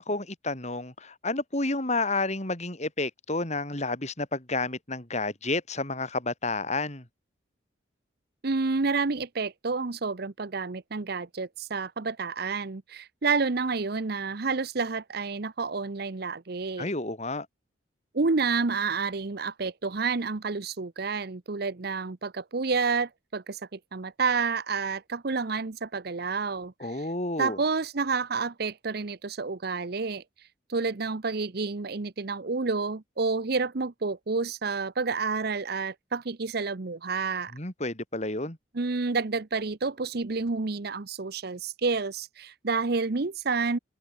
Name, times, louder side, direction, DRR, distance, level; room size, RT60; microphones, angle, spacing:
voice 1, 0.0-7.0 16.8-17.5 26.8-27.6 37.5-38.6, left 2 dB, 35° left, 4.0 m, -30 dB
voice 2, 8.4-16.9 18.1-27.1 27.4-30.2 30.7-37.5 38.7-43.8, right 4 dB, 55° right, 0.8 m, -29 dB
open air
head